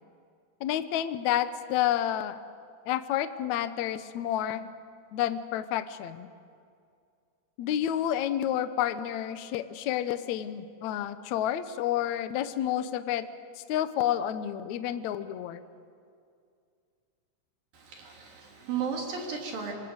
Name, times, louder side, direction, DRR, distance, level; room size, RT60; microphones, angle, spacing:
voice 1, 0.6-2.4 2.9-4.7 5.1-6.3 7.6-13.3 13.7-15.6, left 11 dB, 90° left, 12 dB, 1.6 m, -30 dB
voice 2, 17.7-19.7, right 6 dB, 55° right, 1 dB, 4.7 m, -34 dB
27.0 x 24.5 x 8.1 m, 2.3 s
omnidirectional pair, 4.8 m